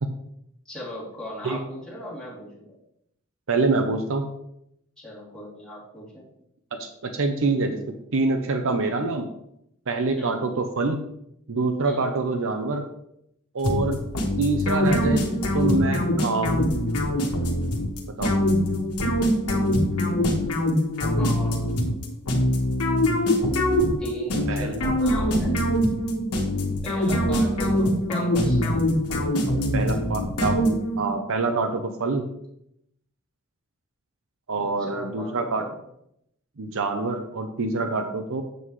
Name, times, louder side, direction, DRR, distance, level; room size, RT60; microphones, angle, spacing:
voice 1, 0.6-2.7 5.0-6.2 10.2-10.3 11.8-12.1 21.1-21.8 24.0-25.6 26.8-28.7 34.6-35.7, left 1 dB, 5° left, -8 dB, 3.1 m, -38 dB
voice 2, 3.5-4.3 6.7-9.3 9.9-11.1 11.5-12.9 13.5-14.0 14.4-15.3 15.5-16.7 18.2-18.4 24.5-24.8 29.7-32.2 34.5-35.6 36.6-38.4, right 3 dB, 60° right, 6 dB, 0.7 m, -26 dB
sound 1, 13.6-31.1, left 1 dB, 75° left, 1.3 m, -23 dB
7.9 x 7.2 x 3.2 m, 0.76 s
head